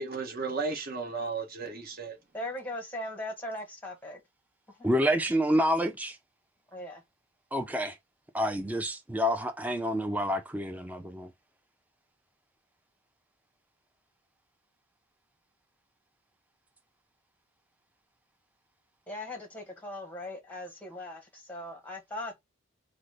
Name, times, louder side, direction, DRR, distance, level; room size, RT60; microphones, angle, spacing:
voice 1, 0.0-2.2, right 4 dB, 45° right, 0.9 m, -34 dB
voice 2, 2.3-4.2 4.7-4.9 6.7-7.0 19.1-22.4, left 1 dB, 10° left, 0.9 m, -39 dB
voice 3, 4.8-6.2 7.5-8.0 8.3-11.3, equal, 5° right, 0.3 m, -28 dB
3.8 x 2.1 x 3.2 m
head